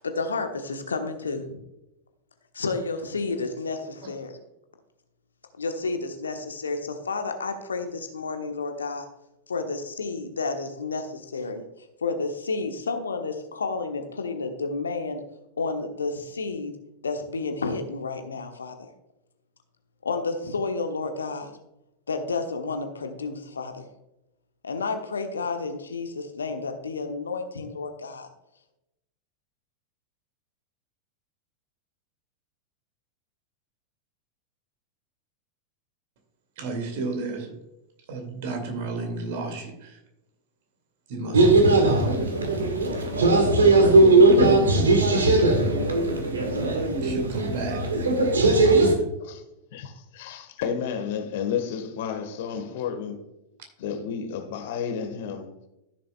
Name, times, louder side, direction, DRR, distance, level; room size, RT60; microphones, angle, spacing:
voice 1, 0.0-1.6 2.5-4.4 5.6-9.1 9.5-15.2 15.6-16.7 17.0-18.9 20.0-21.5 22.1-23.9 24.6-28.3, left 4 dB, 70° left, 1.1 m, -31 dB
voice 2, 36.6-37.5 38.1-40.0 41.1-42.2 44.2-44.9 47.0-47.9, right 2 dB, 50° right, 2.2 m, -33 dB
sound 1, 41.3-48.9, right 2 dB, 70° right, 1.6 m, -19 dB
voice 3, 49.7-53.3 53.8-55.5, left 7 dB, 55° left, 1.4 m, -32 dB
14.5 x 6.8 x 2.3 m
figure-of-eight pair, 90°, 0 cm